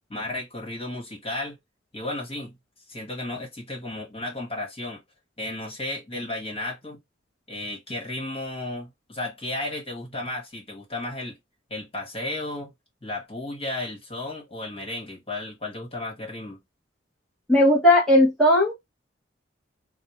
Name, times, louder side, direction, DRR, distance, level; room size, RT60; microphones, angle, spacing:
voice 1, 0.1-1.6 1.9-2.6 2.9-5.0 5.4-7.0 7.5-11.4 11.7-12.7 13.0-16.6, left 2 dB, 30° left, 1.5 m, -33 dB
voice 2, 17.5-18.7, left 1 dB, ahead, 1.1 m, -17 dB
4.2 x 2.2 x 3.1 m
head